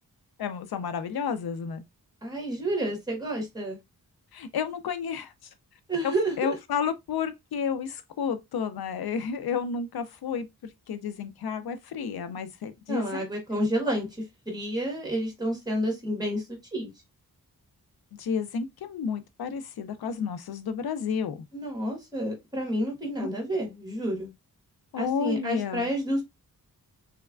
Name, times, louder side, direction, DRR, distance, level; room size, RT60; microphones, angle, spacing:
voice 1, 0.4-1.8 4.3-5.5 6.0-13.3 18.1-21.5 23.2-23.3 24.9-25.9, left 6 dB, 80° left, 0.5 m, -31 dB
voice 2, 2.2-3.8 5.9-6.6 12.9-16.4 16.7-16.9 21.5-24.3 25.0-26.2, right 1 dB, 10° right, 1.3 m, -30 dB
3.5 x 3.1 x 2.3 m
wide cardioid pair, 145°, 37 cm